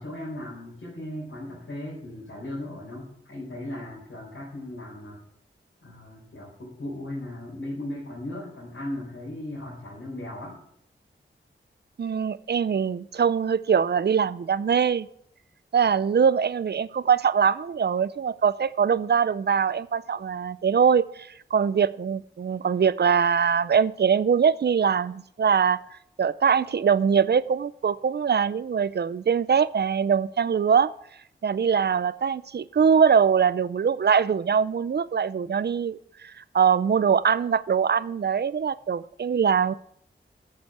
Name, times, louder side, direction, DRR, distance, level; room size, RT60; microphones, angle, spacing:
voice 1, 0.0-5.2 5.8-10.6, left 1 dB, 80° left, -6 dB, 4.1 m, -37 dB
voice 2, 12.0-15.1 15.7-30.9 31.4-39.7, right 7 dB, 55° right, 17 dB, 0.5 m, -23 dB
9.8 x 6.9 x 8.0 m, 0.71 s
cardioid pair, 55°, 21 cm